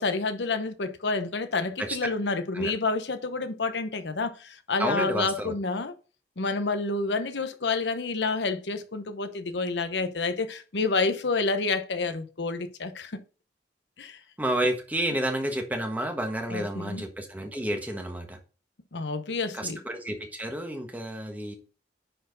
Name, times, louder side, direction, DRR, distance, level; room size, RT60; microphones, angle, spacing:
voice 1, 0.0-5.9 6.4-13.1 14.0-14.2 16.5-17.0 18.9-19.8, left 3 dB, 80° left, 0.9 m, -29 dB
voice 2, 4.8-5.5 14.4-18.4 19.5-21.6, right 1 dB, 10° right, 1.3 m, -30 dB
10.0 x 4.5 x 3.9 m
head